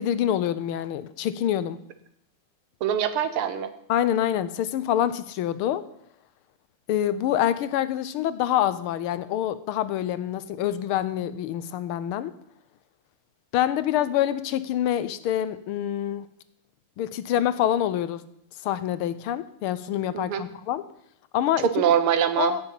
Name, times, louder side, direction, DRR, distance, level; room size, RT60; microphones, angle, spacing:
voice 1, 0.0-1.8 3.9-5.9 6.9-12.3 13.5-16.3 17.0-18.2 18.6-20.8 21.3-21.7 22.4-22.6, left 11 dB, 85° left, 14 dB, 1.6 m, -26 dB
voice 2, 2.8-3.7 20.1-20.4 21.6-22.5, right 9 dB, 85° right, 11 dB, 1.9 m, -23 dB
16.5 x 7.1 x 5.7 m, 0.71 s
omnidirectional pair, 2.3 m